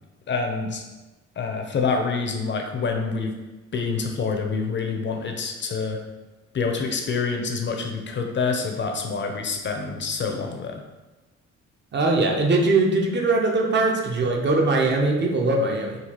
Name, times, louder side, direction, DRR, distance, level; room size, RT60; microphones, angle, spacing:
voice 1, 0.3-0.8 1.4-3.3 3.7-6.0 6.5-10.8, left 4 dB, 40° left, 3 dB, 0.6 m, -27 dB
voice 2, 11.9-16.0, right 2 dB, 35° right, 0 dB, 0.7 m, -21 dB
4.0 x 2.4 x 2.9 m, 1.1 s
cardioid pair, 90°, 30 cm